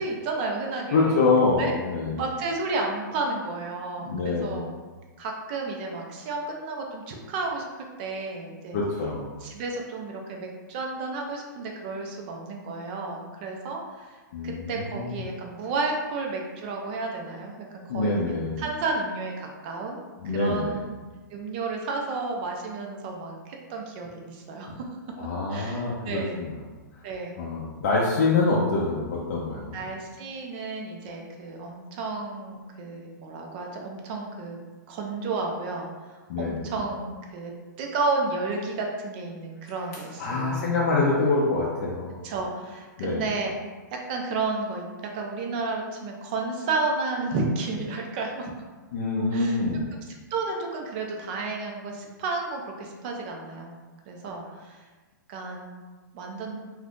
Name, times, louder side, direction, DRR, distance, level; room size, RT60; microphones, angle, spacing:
voice 1, 0.0-1.7 2.2-4.7 5.2-8.8 9.4-14.1 14.4-20.0 20.3-21.0 21.3-24.8 25.5-26.4 27.0-27.3 29.7-34.6 34.9-35.9 36.4-37.5 37.8-40.7 42.2-43.5 43.9-48.5 49.3-49.6 50.3-53.8 54.1-54.9 55.3-55.8 56.1-56.6, right 3 dB, 30° right, 1 dB, 0.4 m, -32 dB
voice 2, 0.9-2.2 4.0-4.7 8.7-9.3 14.3-15.2 17.9-18.6 20.2-20.8 25.2-26.6 27.4-29.8 36.3-36.6 40.2-42.1 43.0-43.2 48.9-49.8, left 3 dB, 45° left, -5 dB, 0.5 m, -25 dB
2.6 x 2.3 x 3.5 m, 1.3 s
hypercardioid pair, 165°, 11 cm